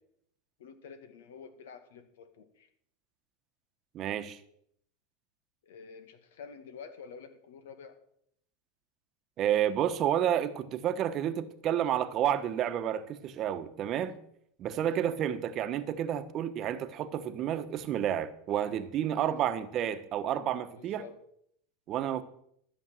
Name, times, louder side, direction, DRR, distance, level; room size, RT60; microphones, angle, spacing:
voice 1, 0.6-2.7 5.6-8.0 14.8-15.0 19.1-19.6 20.8-21.2, left 6 dB, 85° left, 2.1 m, -49 dB
voice 2, 3.9-4.4 9.4-14.2 14.6-21.0 21.9-22.2, right 10 dB, 40° right, 1.1 m, -30 dB
13.5 x 7.3 x 7.5 m
supercardioid pair, 130°, 0 cm